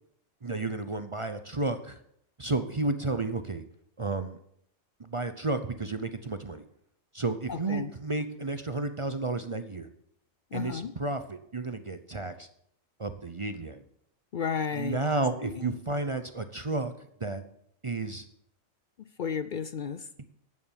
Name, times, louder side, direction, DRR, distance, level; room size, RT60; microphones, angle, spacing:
voice 1, 0.4-2.0 2.4-3.6 4.0-4.4 5.0-6.6 7.1-9.9 10.5-12.5 13.0-13.8 14.8-17.4 17.8-18.3 20.2-20.3, right 3 dB, 35° right, 9 dB, 0.6 m, -32 dB
voice 2, 7.5-7.9 10.5-10.9 14.3-15.0 15.4-15.7 19.0-20.1, left 6 dB, 55° left, 12 dB, 0.5 m, -33 dB
11.0 x 8.5 x 7.2 m, 0.71 s
omnidirectional pair, 1.4 m